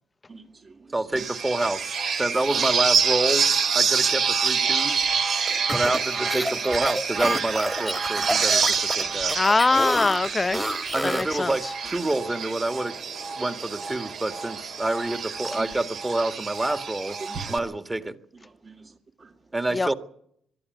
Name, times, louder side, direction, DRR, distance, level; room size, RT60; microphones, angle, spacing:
voice 1, 0.3-1.0 4.5-4.7 5.5-5.8 8.2-8.3 13.5-13.6 15.5-15.7 17.2-17.5 18.4-19.3, right 4 dB, 40° right, 2.3 m, -45 dB
voice 2, 0.9-3.5 3.7-5.1 5.7-9.3 10.9-12.9 13.4-17.2 17.5-18.2 19.5-19.9, right 2 dB, 20° right, 1.8 m, -27 dB
sound 1, 1.2-17.6, right 6 dB, 60° right, 2.6 m, -27 dB
sound 2, 2.9-15.1, right 5 dB, 75° right, 7.1 m, -49 dB
sound 3, 5.5-11.4, equal, ahead, 1.6 m, -29 dB
voice 3, 9.3-10.6 11.0-11.5 17.3-17.4 19.7-19.9, left 3 dB, 25° left, 0.7 m, -22 dB
22.0 x 12.5 x 9.5 m
hypercardioid pair, 55°, 0 cm